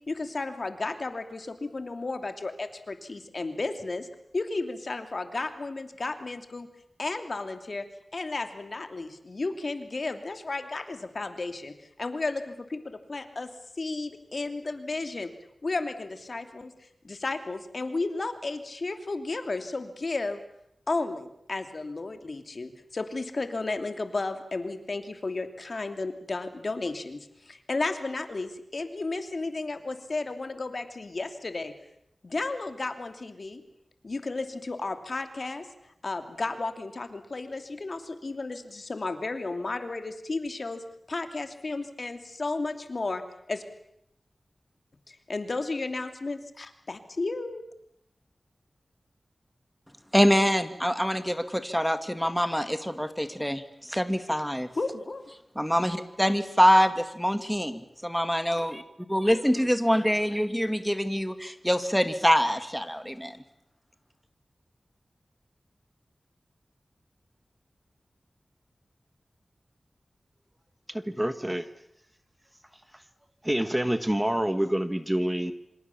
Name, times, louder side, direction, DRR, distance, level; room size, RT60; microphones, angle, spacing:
voice 1, 0.1-4.1 4.3-6.7 7.0-7.9 8.1-11.7 12.0-13.5 13.8-15.3 15.6-16.7 17.0-20.4 20.9-31.7 32.2-33.6 34.0-35.7 36.0-40.8 41.1-43.2 43.5-43.6 45.1-47.6 54.7-55.2, left 3 dB, 60° left, 8 dB, 2.8 m, -33 dB
voice 2, 50.1-54.7 55.6-58.8 59.1-63.4, equal, ahead, 9 dB, 2.4 m, -25 dB
voice 3, 70.9-71.7 73.4-75.5, right 1 dB, 15° right, 11 dB, 1.4 m, -27 dB
26.5 x 26.0 x 7.2 m, 0.77 s
cardioid pair, 50°, 0 cm